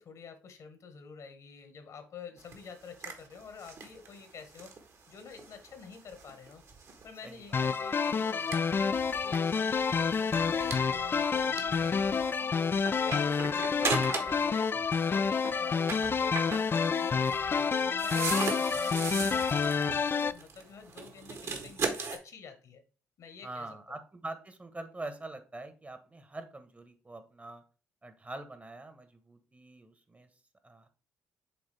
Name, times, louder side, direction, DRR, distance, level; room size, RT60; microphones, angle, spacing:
voice 1, 0.0-4.7 5.1-6.6 7.0-8.9 9.2-12.7 13.0-18.3 18.6-22.8 23.2-24.0, left 6 dB, 55° left, 8 dB, 1.5 m, -48 dB
sound 1, 2.4-14.5 14.8-22.2, right 4 dB, 50° right, 1.5 m, -39 dB
voice 2, 7.2-7.6 14.7-14.9 23.4-27.6 28.0-30.3 30.6-30.9, right 2 dB, 20° right, 9 dB, 1.2 m, -44 dB
sound 2, 7.5-20.3, left 5 dB, 35° left, 0.4 m, -28 dB
8.0 x 3.5 x 3.4 m, 0.36 s
hypercardioid pair, 50°, 7 cm